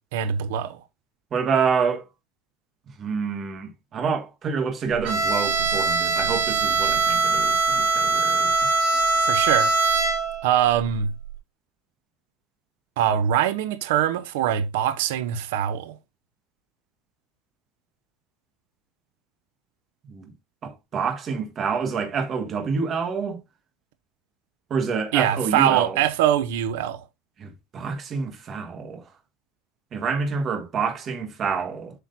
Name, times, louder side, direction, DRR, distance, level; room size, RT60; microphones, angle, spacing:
voice 1, 0.1-0.8 9.3-9.7 10.4-11.1 13.0-16.0 25.1-27.0, right 10 dB, 80° right, 0.7 m, -23 dB
voice 2, 1.3-2.0 3.0-8.8 20.1-20.3 20.6-23.4 24.7-26.0 27.4-29.0 29.9-31.9, right 5 dB, 25° right, 1.5 m, -27 dB
Bowed string instrument, 5.0-10.5, right 3 dB, 60° right, 4.0 m, -22 dB
8.0 x 6.0 x 2.6 m
cardioid pair, 175°, 0 cm